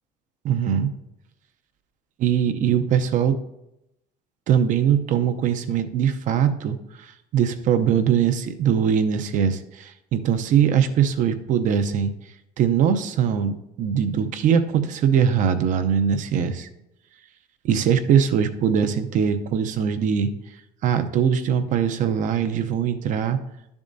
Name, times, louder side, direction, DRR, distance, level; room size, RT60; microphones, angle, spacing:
voice 1, 0.4-0.9 2.2-3.4 4.5-12.1 12.6-16.7 17.6-20.3 20.8-23.4, right 8 dB, 50° right, 9 dB, 0.7 m, -21 dB
11.5 x 7.1 x 2.6 m, 0.86 s
cardioid pair, 120°, 16 cm